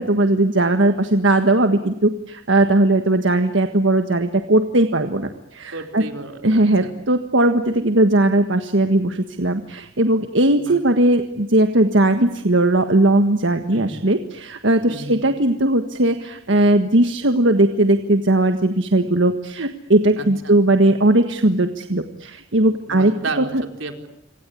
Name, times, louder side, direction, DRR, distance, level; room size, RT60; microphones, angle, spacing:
voice 1, 0.0-6.0 6.4-23.6, right 1 dB, 70° right, 7 dB, 1.6 m, -18 dB
voice 2, 5.7-6.9 10.6-10.8 13.7-13.9 14.8-15.2 20.2-20.6 22.9-23.5 23.8-24.1, right 3 dB, 85° right, 5 dB, 4.4 m, -32 dB
27.0 x 26.0 x 8.5 m, 0.81 s
head